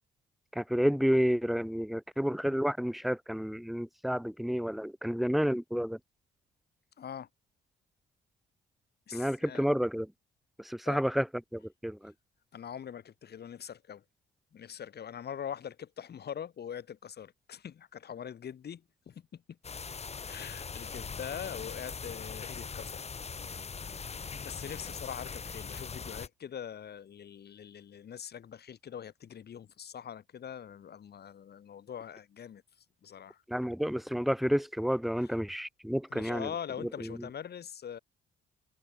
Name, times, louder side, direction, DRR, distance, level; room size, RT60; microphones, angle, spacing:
voice 1, 0.5-6.0 9.1-10.1 10.6-11.3 11.5-12.1 33.5-36.5 36.8-37.3, equal, ahead, 1.8 m, -30 dB
voice 2, 7.0-7.3 9.1-9.6 10.9-11.0 12.5-14.0 14.5-19.4 20.2-23.0 23.8-24.0 24.4-32.6 33.0-33.4 35.2-35.3 36.1-38.0, left 8 dB, 55° left, 3.6 m, -43 dB
sound 1, 19.6-26.3, left 5 dB, 35° left, 1.7 m, -41 dB
cardioid pair, 90°, 20 cm